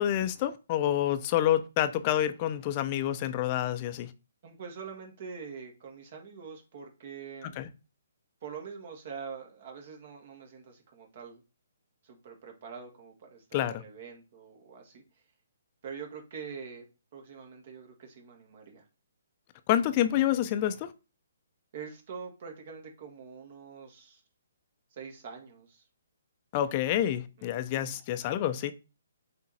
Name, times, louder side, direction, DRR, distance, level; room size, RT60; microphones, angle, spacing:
voice 1, 0.0-4.1 7.6-7.7 13.5-13.8 19.7-20.9 26.5-28.7, left 11 dB, 35° left, 0.7 m, -28 dB
voice 2, 4.4-7.6 8.4-11.4 12.0-15.0 15.8-16.9 17.1-18.8 21.7-24.2 24.9-25.8 27.4-27.9, right 6 dB, 50° right, 2.3 m, -44 dB
7.7 x 3.7 x 4.3 m
figure-of-eight pair, 135°, 0 cm